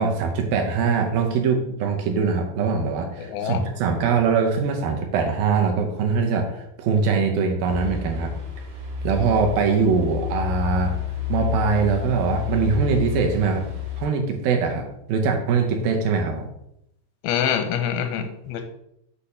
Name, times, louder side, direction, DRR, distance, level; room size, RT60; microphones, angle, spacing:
voice 1, 0.0-8.3 9.0-11.0 11.3-13.6 14.0-16.5, right 5 dB, 75° right, 3 dB, 2.5 m, -22 dB
voice 2, 3.2-3.6 17.2-18.6, left 8 dB, 90° left, 6 dB, 2.5 m, -25 dB
sound 1, 7.6-14.0, left 11 dB, 60° right, 1.3 m, -30 dB
8.2 x 2.8 x 5.6 m, 0.78 s
omnidirectional pair, 4.3 m